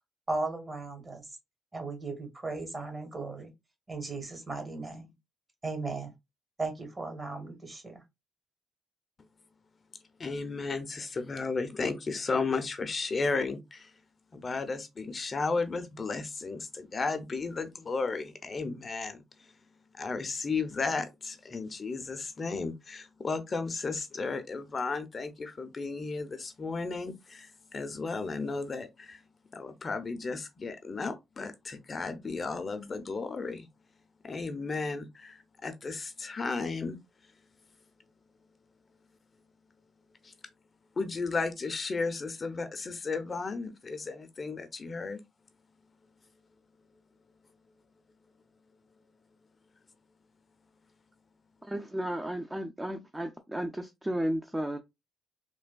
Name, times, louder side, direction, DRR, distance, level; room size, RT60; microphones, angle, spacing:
voice 1, 0.3-1.4 1.7-3.5 3.9-5.1 5.6-6.1 6.6-8.0, right 3 dB, 30° right, 1.2 m, -36 dB
voice 2, 10.2-13.9 14.3-19.2 19.9-29.2 29.5-33.7 34.2-37.0 40.2-40.3 41.0-45.2, left 4 dB, 40° left, 0.5 m, -34 dB
voice 3, 51.6-54.8, right 1 dB, 15° right, 0.4 m, -33 dB
3.2 x 2.2 x 2.2 m
supercardioid pair, 60°, 0 cm